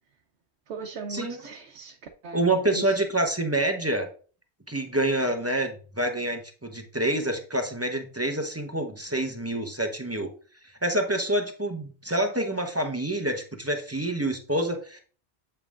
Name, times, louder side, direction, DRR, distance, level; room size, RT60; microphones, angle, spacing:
voice 1, 0.7-2.0 2.2-3.0, right 5 dB, 85° right, 3 dB, 1.0 m, -38 dB
voice 2, 2.3-4.1 4.7-10.3 10.8-15.0, right 1 dB, 15° right, 4 dB, 0.7 m, -27 dB
7.9 x 5.3 x 2.4 m, 0.40 s
omnidirectional pair, 1.1 m